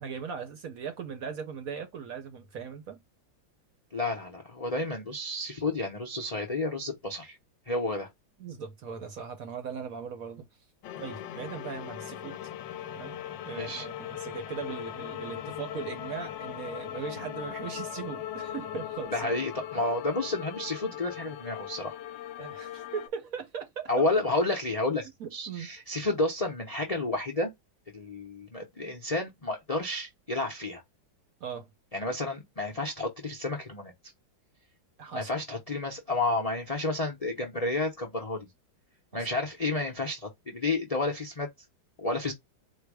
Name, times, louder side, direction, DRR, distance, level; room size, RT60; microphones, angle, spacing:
voice 1, 0.0-3.0 8.4-10.5 11.0-12.4 12.9-19.3 19.7-19.9 22.4-24.1 25.2-25.7 31.4-31.7 35.0-35.3 39.1-39.3, right 6 dB, 60° right, 1.0 m, -39 dB
voice 2, 3.9-7.4 7.7-8.1 13.5-13.9 19.1-21.9 23.9-27.5 27.9-30.8 31.9-33.9 35.1-38.5 39.1-41.5 42.0-42.3, left 2 dB, 50° left, 0.4 m, -31 dB
sound 1, 10.8-23.1, left 11 dB, 75° left, 1.2 m, -39 dB
4.5 x 2.2 x 4.7 m
omnidirectional pair, 2.1 m